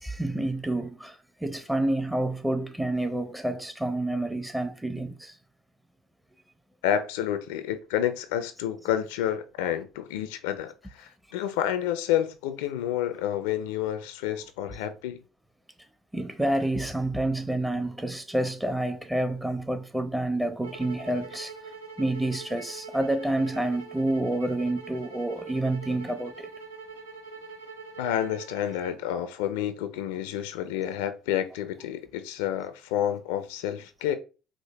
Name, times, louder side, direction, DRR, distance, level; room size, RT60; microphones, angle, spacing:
voice 1, 0.0-5.4 16.1-21.5 22.0-26.5, right 1 dB, 5° right, 0.7 m, -28 dB
voice 2, 6.8-15.2 28.0-34.1, left 10 dB, 70° left, 0.4 m, -29 dB
sound 1, 20.6-29.0, right 4 dB, 80° right, 0.6 m, -43 dB
5.0 x 2.0 x 3.0 m
figure-of-eight pair, 60°, 0 cm